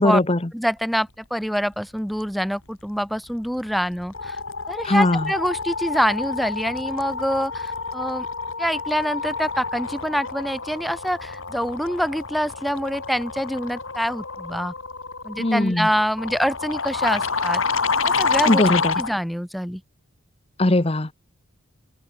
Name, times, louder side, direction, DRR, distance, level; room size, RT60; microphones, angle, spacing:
voice 1, 0.0-0.4 4.8-5.3 15.4-15.9 18.5-18.9 20.6-21.1, left 1 dB, 30° left, 1.0 m, -20 dB
voice 2, 0.5-4.4 4.7-8.3 8.6-14.7 15.2-17.6 18.0-18.6 19.0-19.8, equal, ahead, 1.9 m, -25 dB
sound 1, 3.3-3.6 3.9-19.1, left 4 dB, 75° left, 4.1 m, -28 dB
head